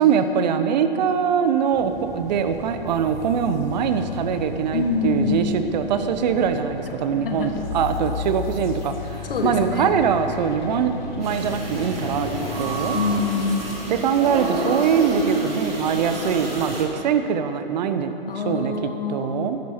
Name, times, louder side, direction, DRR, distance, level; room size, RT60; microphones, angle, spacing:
voice 1, 0.0-12.3 12.6-13.0 13.9-18.1 18.4-18.7 19.1-19.6, right 7 dB, 50° right, 9 dB, 1.0 m, -22 dB
sound 1, 1.7-13.8, left 2 dB, 10° left, 1.5 m, -42 dB
sound 2, 2.9-13.2, left 6 dB, 50° left, 2.1 m, -35 dB
voice 2, 4.7-5.4 7.1-7.5 9.3-9.9 12.9-13.6 18.3-19.5, left 4 dB, 70° left, 4 dB, 1.5 m, -25 dB
sound 3, 11.2-16.8, right 1 dB, 85° right, 3.5 m, -29 dB
15.0 x 11.5 x 4.4 m, 3.0 s
figure-of-eight pair, 120°, 29 cm